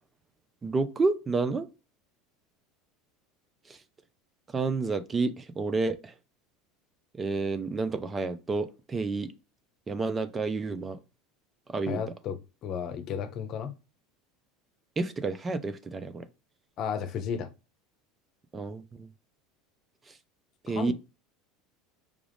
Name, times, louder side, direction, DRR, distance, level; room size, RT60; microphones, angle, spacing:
voice 1, 0.6-1.7 3.7-3.8 4.5-6.1 7.1-9.3 9.9-11.0 11.7-12.0 15.0-16.2 18.5-19.1 20.1-20.2 20.6-20.9, right 3 dB, 25° right, 0.6 m, -30 dB
voice 2, 11.9-13.7 16.8-17.5 20.7-20.9, left 7 dB, 50° left, 0.8 m, -33 dB
5.0 x 2.4 x 3.4 m
hypercardioid pair, 85°, 0 cm